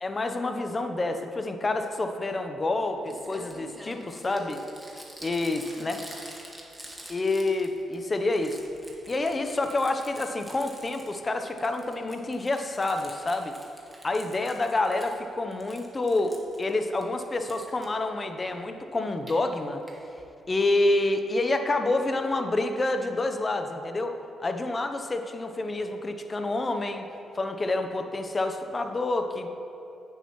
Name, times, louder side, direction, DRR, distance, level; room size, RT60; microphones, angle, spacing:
voice 1, 0.0-4.6 5.2-6.0 7.1-8.6 9.1-13.5 14.0-19.8 20.5-27.1 27.3-29.5, left 2 dB, 35° left, 6 dB, 0.8 m, -28 dB
Crumpling crinkling, 2.7-2.8 3.0-7.9 8.2-11.3 11.6-15.2 15.5-17.0 17.5-17.9 19.0-19.3 19.9-20.0 20.2-20.3 20.5-20.6, right 1 dB, 5° right, 1.9 m, -46 dB
10.0 x 8.9 x 3.1 m, 2.7 s
supercardioid pair, 60°, 0 cm